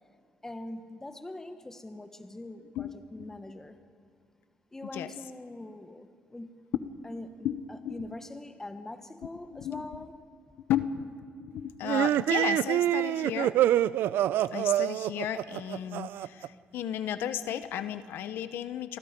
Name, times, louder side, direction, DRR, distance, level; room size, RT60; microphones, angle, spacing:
voice 1, 0.4-3.8 4.7-6.5 7.0-7.3 7.7-10.2, left 2 dB, 15° left, 8 dB, 1.4 m, -43 dB
voice 2, 2.7-3.3 4.9-5.1 6.8-6.9 7.4-8.0 9.5-10.0 10.7-13.5 14.5-19.0, left 10 dB, 85° left, 11 dB, 1.0 m, -34 dB
sound 1, 11.8-16.5, right 12 dB, 80° right, 0.4 m, -26 dB
28.0 x 23.5 x 5.2 m, 2.3 s
cardioid pair, 115°, 4 cm